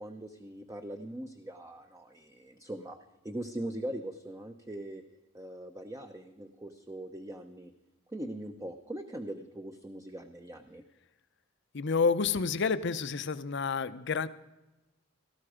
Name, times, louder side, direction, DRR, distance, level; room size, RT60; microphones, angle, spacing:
voice 1, 0.0-3.0 3.2-5.0 5.3-7.7 8.1-10.8, right 1 dB, 15° right, 6 dB, 0.7 m, -41 dB
voice 2, 11.7-14.3, left 5 dB, 60° left, 14 dB, 0.7 m, -29 dB
18.0 x 13.5 x 5.0 m, 1.0 s
head